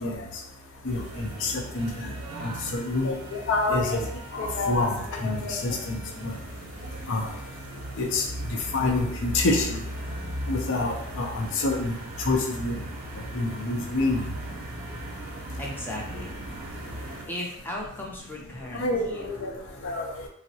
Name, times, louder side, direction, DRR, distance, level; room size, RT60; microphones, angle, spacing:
voice 1, 0.8-2.1 2.4-4.1 4.3-6.4 7.1-7.3 8.0-9.8 10.5-12.8 13.2-14.3 18.7-20.3, left 2 dB, 60° left, 2 dB, 0.5 m, -27 dB
sound 1, 0.9-17.2, right 1 dB, 45° right, 0.6 m, -37 dB
voice 2, 15.6-16.8 17.3-19.3 19.6-19.9, left 1 dB, 10° left, -3 dB, 0.5 m, -38 dB
3.5 x 2.0 x 2.7 m, 0.70 s
head